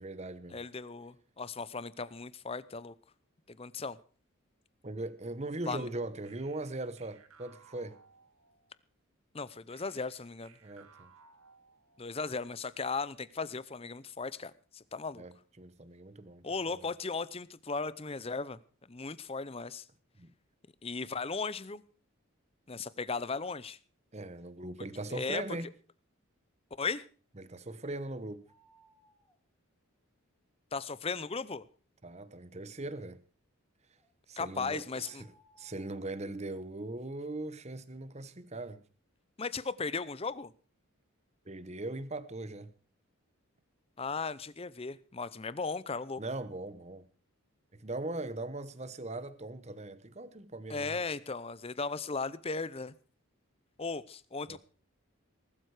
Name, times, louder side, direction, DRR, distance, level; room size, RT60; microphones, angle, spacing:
voice 1, 0.0-0.6 4.8-8.0 10.6-11.1 15.2-16.8 20.2-20.3 24.1-25.7 27.4-28.5 32.0-33.2 34.3-38.8 41.5-42.7 46.2-47.0 47.7-51.0 54.5-54.6, right 2 dB, 30° right, 1.0 m, -40 dB
voice 2, 0.5-2.9 3.5-4.0 5.7-5.9 9.3-10.5 12.0-15.2 16.4-18.6 18.9-19.9 20.8-21.8 22.7-23.8 25.1-25.4 26.8-27.0 30.7-31.6 34.4-35.2 39.4-40.5 44.0-46.2 50.7-52.9 53.8-54.6, left 4 dB, 25° left, 0.6 m, -36 dB
sound 1, 6.2-8.8 9.7-12.2, right 5 dB, 75° right, 1.9 m, -61 dB
sound 2, 28.4-29.4 34.0-34.1 34.8-36.1, equal, ahead, 2.2 m, -66 dB
19.5 x 12.5 x 4.9 m
head